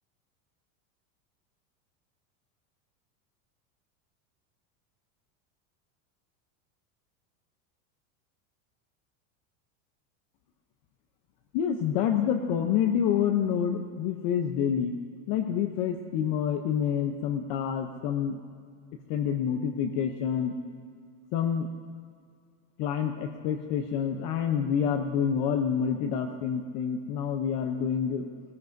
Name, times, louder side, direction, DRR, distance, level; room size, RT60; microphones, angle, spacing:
voice 1, 11.5-14.9 15.3-18.3 19.1-20.5 21.3-21.7 22.8-28.2, left 8 dB, 45° left, 4 dB, 0.8 m, -27 dB
18.0 x 17.0 x 2.6 m, 2.1 s
supercardioid pair, 155°, 42 cm